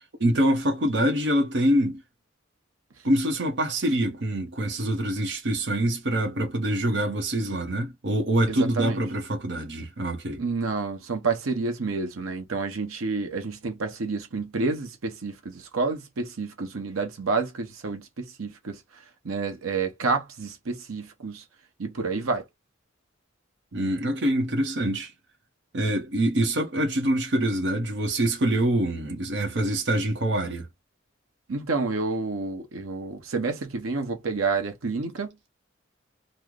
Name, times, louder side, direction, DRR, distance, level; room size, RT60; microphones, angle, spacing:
voice 1, 0.2-2.0 3.0-10.4 23.7-25.1 25.7-30.7, right 1 dB, 55° right, 0.7 m, -25 dB
voice 2, 8.5-9.0 10.4-18.8 19.2-21.4 21.8-22.4 31.5-35.5, right 4 dB, 90° right, 0.8 m, -29 dB
3.0 x 2.0 x 3.6 m
head